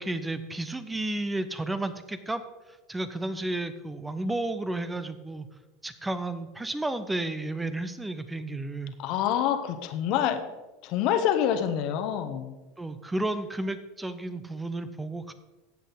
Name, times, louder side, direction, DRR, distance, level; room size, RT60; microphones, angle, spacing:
voice 1, 0.0-2.4 2.7-5.5 5.8-8.9 12.8-15.3, right 2 dB, 10° right, 12 dB, 0.8 m, -32 dB
voice 2, 9.0-10.4 10.8-12.5, left 9 dB, 55° left, 9 dB, 1.1 m, -26 dB
14.5 x 8.2 x 4.0 m, 1.1 s
figure-of-eight pair, 80°, 0 cm